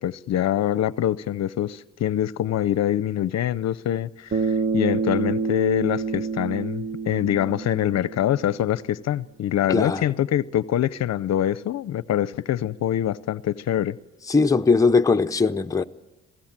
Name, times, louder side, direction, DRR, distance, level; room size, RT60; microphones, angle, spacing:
voice 1, 0.0-14.0, left 11 dB, 60° left, 0.6 m, -24 dB
Bass guitar, 4.3-8.7, right 5 dB, 40° right, 1.0 m, -27 dB
voice 2, 9.7-10.0 14.3-15.8, left 4 dB, 10° left, 0.7 m, -20 dB
26.0 x 17.0 x 7.4 m
cardioid pair, 90°, 30 cm